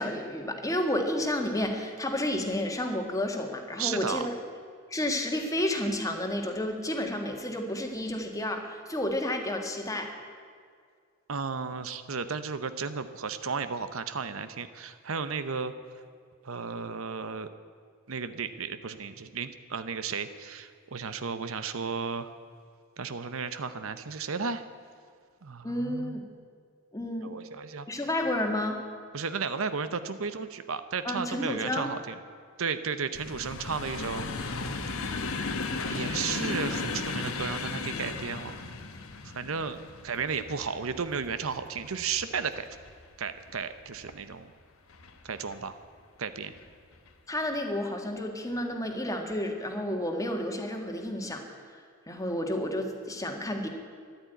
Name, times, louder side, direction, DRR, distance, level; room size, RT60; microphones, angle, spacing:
voice 1, 0.0-4.3 4.9-10.1 25.6-26.2 26.9-27.3 27.9-28.8 31.0-31.9 47.3-51.4 52.1-53.7, left 1 dB, 15° left, 3 dB, 1.7 m, -31 dB
voice 2, 3.8-4.3 11.3-15.7 16.4-17.5 18.1-22.3 23.0-24.6 25.4-26.2 27.2-28.1 29.1-32.1 32.6-34.6 35.9-38.5 39.2-39.8 40.0-42.7 43.2-44.5 45.2-45.8 46.2-46.5, right 5 dB, 70° right, 11 dB, 0.8 m, -34 dB
sound 1, 33.1-44.2 44.9-45.6 46.4-46.6 46.9-47.1, left 3 dB, 70° left, 1.2 m, -36 dB
14.0 x 11.0 x 9.2 m, 2.1 s
head